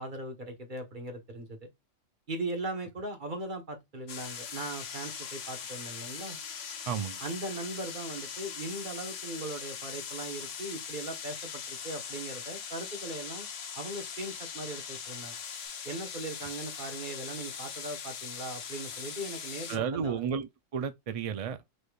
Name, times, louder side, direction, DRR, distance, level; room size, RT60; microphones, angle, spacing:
voice 1, 0.0-1.7 2.3-6.4 7.2-13.5 13.7-15.4 15.8-20.3, right 2 dB, 40° right, 1.3 m, -39 dB
sound 1, 4.1-19.8, left 7 dB, 70° left, 1.1 m, -41 dB
sound 2, 4.2-15.7, left 9 dB, 25° right, 1.4 m, -57 dB
voice 2, 6.9-7.2 19.7-21.7, right 7 dB, 65° right, 0.3 m, -33 dB
4.9 x 4.1 x 2.3 m
omnidirectional pair, 1.3 m